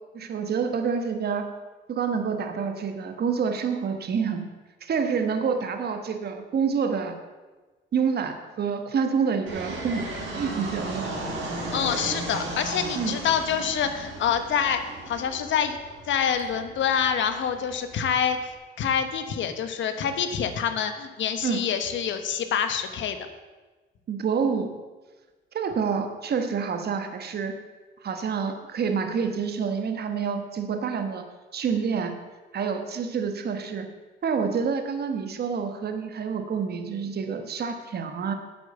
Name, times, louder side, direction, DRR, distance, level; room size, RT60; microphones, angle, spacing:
voice 1, 0.1-1.5 1.9-4.5 4.8-7.2 7.9-11.1 13.0-13.2 21.4-21.6 24.1-24.7 25.5-27.6 28.0-31.2 31.5-32.2 32.5-33.9 34.2-38.3, right 6 dB, 55° right, 7 dB, 1.3 m, -27 dB
Fixed-wing aircraft airplane, 9.5-18.5, right 2 dB, 75° right, 4.1 m, -36 dB
voice 2, 11.7-14.8 15.1-15.8 16.1-23.2, left 7 dB, 70° left, 8 dB, 1.2 m, -26 dB
9.2 x 8.0 x 7.0 m, 1.3 s
cardioid pair, 90°, 20 cm